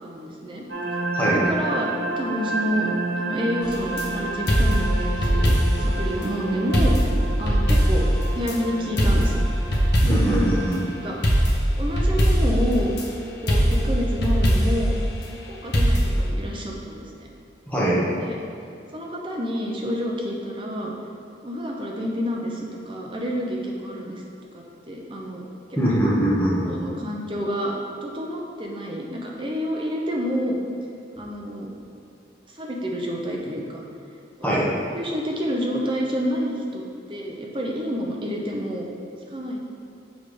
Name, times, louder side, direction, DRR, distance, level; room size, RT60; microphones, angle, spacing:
voice 1, 0.0-0.7 1.2-1.9 2.2-2.9 3.2-7.0 7.4-8.1 8.3-9.4 10.1-10.6 11.0-11.2 11.8-12.9 13.4-15.0 15.5-17.3 18.2-18.4 18.9-20.9 21.4-24.2 24.5-25.5 26.6-27.7 28.0-30.6 31.2-31.7 32.5-33.8 34.4-36.8 37.1-38.9 39.3-39.6, equal, 25° right, -1 dB, 0.7 m, -29 dB
sound 1, 0.7-11.5, right 3 dB, 70° right, 1.4 m, -31 dB
sound 2, 3.6-4.1 4.5-5.9 6.2-6.3 6.7-8.6 9.0-10.4 11.2-13.1 13.5-14.9 15.7-16.3, equal, 65° left, 1.0 m, -20 dB
voice 2, 10.0-10.8 17.7-18.0 25.8-26.7 34.4-34.6, right 1 dB, 10° left, -8 dB, 1.2 m, -22 dB
6.3 x 3.4 x 5.0 m, 2.5 s
head